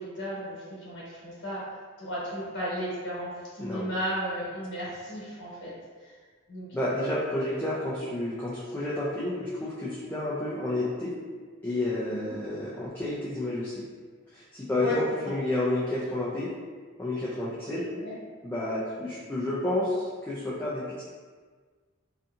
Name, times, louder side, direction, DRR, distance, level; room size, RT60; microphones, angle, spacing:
voice 1, 0.0-1.6 2.0-5.7 6.0-6.1 6.5-6.9 12.1-12.3 14.8-15.0 15.2-15.3 17.9-18.1, equal, 55° left, -8 dB, 1.1 m, -34 dB
voice 2, 6.7-11.1 11.6-13.8 14.3-16.5 17.0-17.9 18.4-21.0, left 1 dB, 10° left, -10 dB, 0.3 m, -30 dB
2.7 x 2.6 x 2.3 m, 1.5 s
head